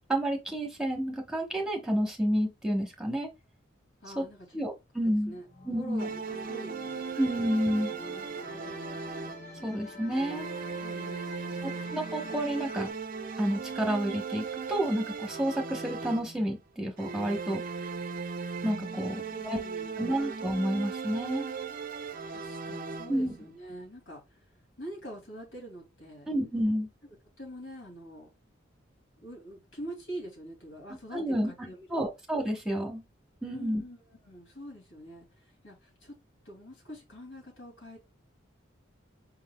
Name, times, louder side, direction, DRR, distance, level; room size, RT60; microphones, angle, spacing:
voice 1, 0.1-3.3 4.2-4.3 4.5-5.3 5.7-6.1 7.2-7.9 9.6-10.5 11.6-12.9 13.4-17.6 18.6-19.1 19.4-19.6 20.0-21.5 23.1-23.3 26.3-26.9 31.1-31.5 31.9-33.0 33.4-33.8, equal, 5° right, 0.9 m, -30 dB
voice 2, 4.0-4.6 5.0-5.5 5.8-7.1 7.4-7.5 8.3-9.0 10.8-11.8 18.9-20.2 22.2-24.4 24.8-26.3 27.4-28.3 29.2-32.2 33.5-34.0 34.2-36.1 36.4-38.0, right 1 dB, 80° left, 2.6 m, -45 dB
sound 1, 5.4-12.9, left 3 dB, 35° left, 1.0 m, -47 dB
sound 2, 6.0-9.7 10.1-16.6 17.0-23.4, right 5 dB, 45° right, 0.5 m, -37 dB
5.5 x 4.0 x 2.2 m
head